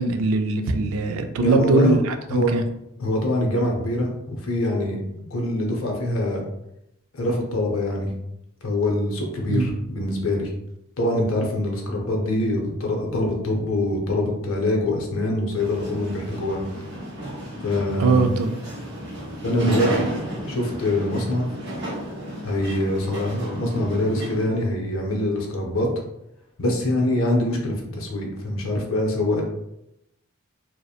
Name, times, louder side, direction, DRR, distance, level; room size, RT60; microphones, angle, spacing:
voice 1, 0.0-2.6 9.5-9.7 18.0-18.5 19.6-19.8, right 3 dB, 85° right, 7 dB, 0.3 m, -21 dB
voice 2, 1.4-2.0 2.3-2.5 3.0-6.4 7.1-8.1 8.6-10.5 11.0-16.6 17.6-18.2 19.4-20.1 20.5-21.5 22.4-25.9 26.6-29.4, left 1 dB, 80° left, 1 dB, 0.6 m, -24 dB
sound 1, 15.6-24.4, right 1 dB, 55° right, 0.7 m, -33 dB
2.8 x 2.0 x 2.3 m, 0.84 s
head